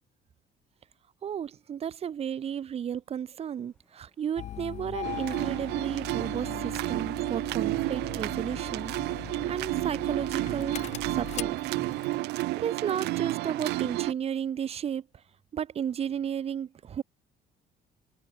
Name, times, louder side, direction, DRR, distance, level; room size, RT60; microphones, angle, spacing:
voice 1, 1.2-10.8 11.1-11.6 12.5-15.1 15.5-17.0, right 8 dB, 35° right, 0.6 m, -33 dB
sound 1, 3.4-10.8, left 1 dB, 5° left, 7.9 m, -72 dB
Engine starting, 4.4-12.2, left 11 dB, 40° left, 0.4 m, -41 dB
sound 2, 5.0-14.1, right 20 dB, 80° right, 0.5 m, -31 dB
cardioid pair, 110°, 17 cm